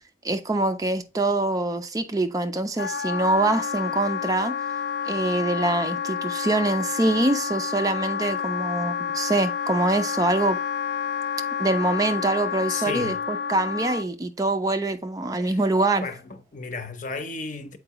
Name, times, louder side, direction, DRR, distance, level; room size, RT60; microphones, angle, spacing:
voice 1, 0.2-4.6 5.0-10.6 11.6-16.1, right 2 dB, 20° right, 0.4 m, -24 dB
Wind instrument woodwind instrument, 2.8-14.1, left 7 dB, 65° left, 0.3 m, -29 dB
voice 2, 12.7-13.2 15.4-15.6 16.0-17.8, left 4 dB, 45° left, 0.7 m, -34 dB
7.7 x 4.6 x 2.9 m
head